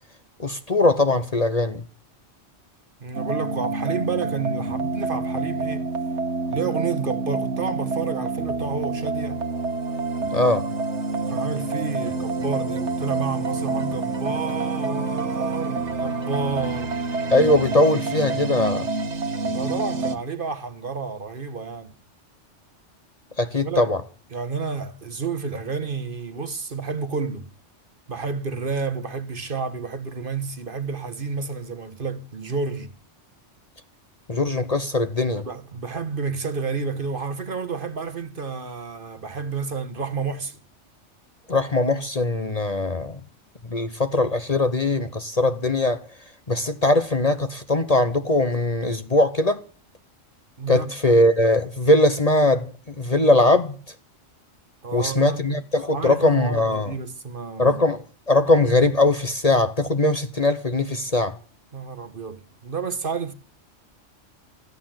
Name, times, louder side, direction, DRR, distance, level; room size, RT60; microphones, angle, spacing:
voice 1, 0.4-1.8 10.3-10.7 17.3-18.9 23.4-24.0 34.3-35.4 41.5-43.2 43.7-46.1 46.5-49.6 50.7-52.7 53.0-53.7 54.9-56.9 57.6-61.4, left 2 dB, 35° left, 1.0 m, -20 dB
voice 2, 3.0-5.8 6.5-9.4 11.0-16.9 19.5-21.9 23.6-23.9 24.3-27.5 28.1-32.9 35.3-40.6 50.6-51.2 54.8-55.6 55.9-57.8 61.7-63.3, right 5 dB, 45° right, 1.3 m, -30 dB
sound 1, 3.1-20.2, right 3 dB, 65° right, 1.6 m, -27 dB
14.5 x 11.0 x 7.6 m
omnidirectional pair, 1.3 m